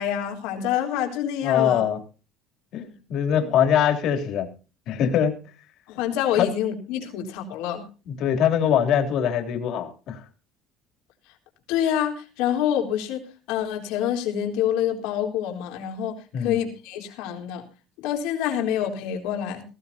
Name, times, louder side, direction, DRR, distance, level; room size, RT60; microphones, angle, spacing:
voice 1, 0.0-1.8 5.9-7.8 11.7-13.2 13.5-17.6 18.0-19.6, left 10 dB, 85° left, 2 dB, 3.8 m, -27 dB
voice 2, 1.4-2.0 2.7-4.5 4.9-5.3 6.3-6.5 8.1-10.2 16.3-16.6, left 9 dB, 60° left, 5 dB, 3.2 m, -22 dB
19.0 x 15.5 x 2.8 m, 0.34 s
cardioid pair, 130°, 0 cm